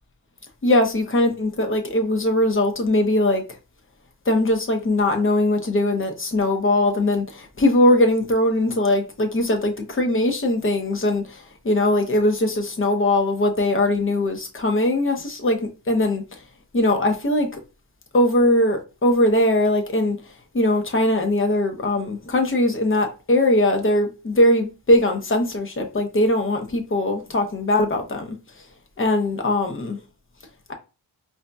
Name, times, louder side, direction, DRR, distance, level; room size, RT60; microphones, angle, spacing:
voice 1, 0.6-3.4 4.3-15.6 15.9-16.2 16.7-17.6 18.1-20.2 20.5-28.4 29.0-30.0, left 1 dB, 25° left, 0.7 m, -20 dB
4.8 x 2.7 x 2.2 m
wide cardioid pair, 95°, 46 cm